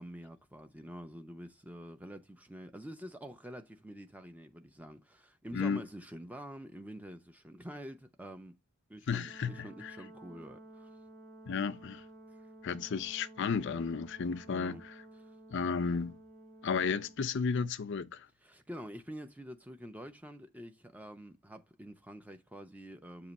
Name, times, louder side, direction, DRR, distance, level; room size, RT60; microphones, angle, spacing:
voice 1, 0.0-8.6 8.9-10.9 12.7-12.8 14.4-14.8 15.1-15.3 18.4-23.3, equal, 5° right, 0.6 m, -47 dB
voice 2, 9.1-10.0 11.5-12.0 12.6-14.9 15.5-16.2 16.6-18.3, left 5 dB, 55° left, 0.5 m, -33 dB
Brass instrument, 9.2-17.2, right 1 dB, 40° right, 3.9 m, -53 dB
7.2 x 3.0 x 5.3 m
head